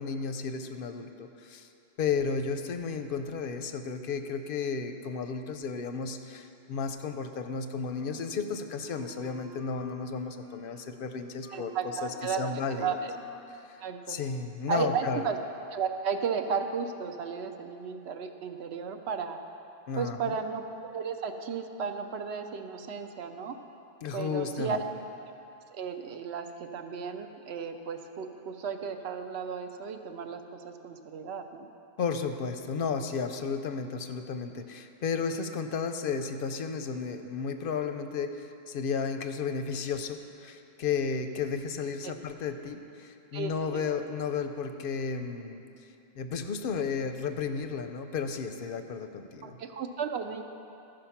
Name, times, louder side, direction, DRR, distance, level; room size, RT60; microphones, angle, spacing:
voice 1, 0.0-1.7 2.0-11.7 12.0-13.0 13.6-13.8 14.1-15.3 19.9-20.3 24.0-24.8 32.0-45.6 46.2-49.6, left 5 dB, 60° left, 8 dB, 0.6 m, -33 dB
Wind instrument woodwind instrument, 7.8-13.6, right 3 dB, 40° right, 0.8 m, -51 dB
voice 2, 11.5-13.1 13.8-14.2 14.7-15.4 15.7-19.4 20.0-20.6 20.9-23.6 24.1-24.8 25.7-31.7 42.0-42.1 43.3-43.8 49.4-50.4, right 6 dB, 70° right, 6 dB, 0.8 m, -34 dB
13.5 x 5.2 x 5.7 m, 2.8 s
omnidirectional pair, 1.2 m